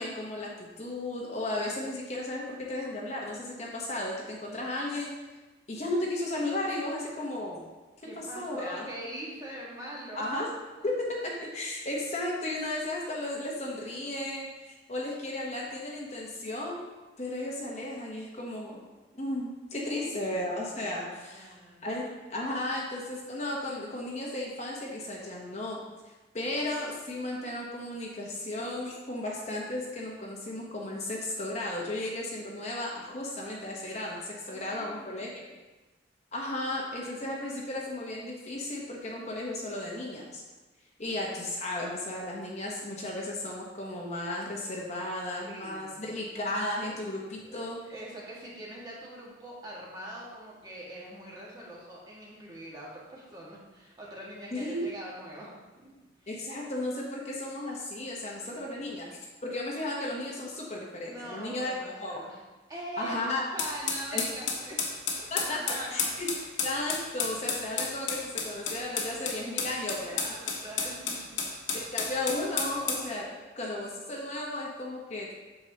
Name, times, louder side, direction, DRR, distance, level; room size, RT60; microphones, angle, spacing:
voice 1, 0.0-5.1 5.7-7.7 8.2-8.8 10.1-10.5 10.8-16.8 17.2-18.9 19.1-21.5 21.8-35.5 36.3-40.4 41.0-47.8 54.5-54.9 56.3-62.2 63.0-63.4 64.1-64.2 65.3-66.3 66.6-70.4 71.7-75.3, left 1 dB, 35° left, -2 dB, 1.0 m, -34 dB
voice 2, 8.0-10.3 10.8-10.9 19.9-20.9 21.2-21.9 34.5-35.4 45.4-46.1 46.8-47.0 47.4-55.9 56.2-56.3 58.4-59.1 61.0-62.4 62.7-64.8 65.3-66.2 69.0-69.7 70.3-71.4, right 1 dB, 20° right, -5 dB, 1.7 m, -43 dB
sound 1, 63.6-73.1, left 5 dB, 70° left, 1.3 m, -32 dB
8.4 x 6.9 x 2.9 m, 1.2 s
head